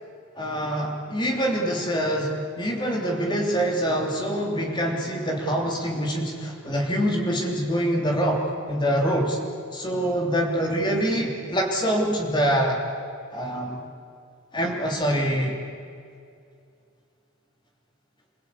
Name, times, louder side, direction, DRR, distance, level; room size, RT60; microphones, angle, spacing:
voice 1, 0.3-9.4 9.7-12.8 13.3-13.8 14.5-15.6, equal, 20° left, 0 dB, 3.2 m, -25 dB
27.0 x 23.0 x 8.5 m, 2.4 s
head